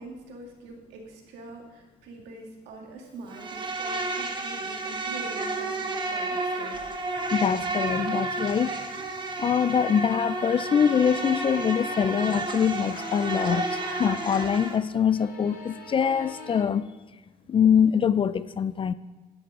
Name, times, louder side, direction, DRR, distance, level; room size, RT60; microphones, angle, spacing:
voice 1, 0.0-6.9, right 3 dB, 90° right, 2.2 m, -44 dB
Insect, 3.3-14.8, right 2 dB, 25° right, 1.3 m, -31 dB
voice 2, 7.3-8.9 9.4-16.9 17.5-18.9, left 7 dB, 30° left, 0.3 m, -24 dB
sound 1, 10.9-14.7 15.0-16.6, left 2 dB, 60° left, 1.4 m, -42 dB
12.0 x 10.5 x 3.7 m
cardioid pair, 110°, 17 cm